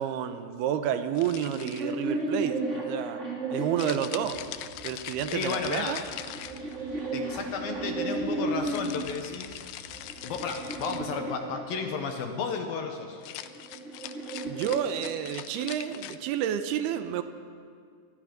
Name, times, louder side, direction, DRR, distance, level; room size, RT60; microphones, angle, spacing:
voice 1, 0.0-3.2 3.5-4.4 4.8-6.0 14.4-17.2, right 9 dB, 75° right, 9 dB, 2.6 m, -30 dB
sound 1, 1.1-2.1 3.8-7.0 8.7-11.1 13.1-16.2, left 13 dB, 85° left, 2.2 m, -41 dB
sound 2, 1.4-4.8 5.7-9.1 9.8-12.2 13.3-15.7, right 2 dB, 20° right, 2.3 m, -34 dB
sound 3, 4.2-11.0, right 2 dB, 40° right, 8.2 m, -52 dB
voice 2, 5.3-6.0 7.1-9.9 10.2-13.2, left 5 dB, 65° left, 5 dB, 2.6 m, -33 dB
26.0 x 20.0 x 5.2 m, 2.2 s
omnidirectional pair, 5.2 m